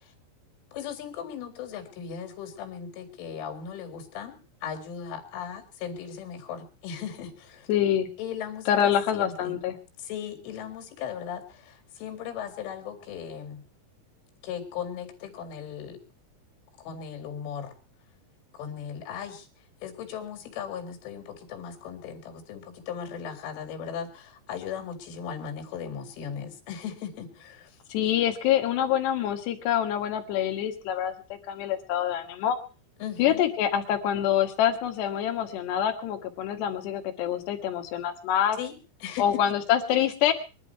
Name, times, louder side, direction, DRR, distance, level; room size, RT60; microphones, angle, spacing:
voice 1, 0.7-4.4 4.6-7.7 8.2-9.6 10.0-13.6 14.4-16.0 16.8-17.7 18.5-19.5 19.8-27.7 33.0-33.4 38.6-38.7 39.0-39.4, left 8 dB, 85° left, 3 dB, 4.7 m, -37 dB
voice 2, 7.7-8.1 8.7-9.8 27.9-32.6 33.2-38.6 39.2-40.3, left 10 dB, 70° left, 6 dB, 3.6 m, -26 dB
23.0 x 11.5 x 4.6 m, 0.34 s
omnidirectional pair, 5.5 m